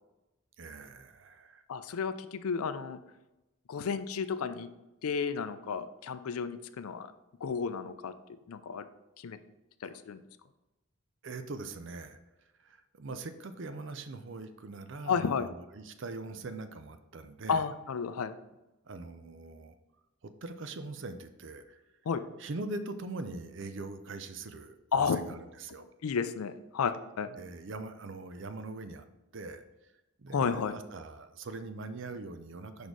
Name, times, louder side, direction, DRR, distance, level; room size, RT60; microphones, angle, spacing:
voice 1, 0.6-1.6 11.2-12.2 12.6-17.6 18.8-19.8 20.2-21.8 22.4-25.8 27.4-29.0 29.3-29.6 30.2-32.9, right 3 dB, 55° right, 10 dB, 0.5 m, -42 dB
voice 2, 1.7-3.0 3.7-4.7 5.0-7.1 7.4-8.1 8.5-8.8 9.2-9.4 9.8-10.2 15.1-15.5 17.5-18.3 22.1-22.2 24.9-25.2 26.0-27.4 30.3-30.7, left 6 dB, 80° left, 12 dB, 0.4 m, -32 dB
5.1 x 4.2 x 4.6 m, 0.99 s
head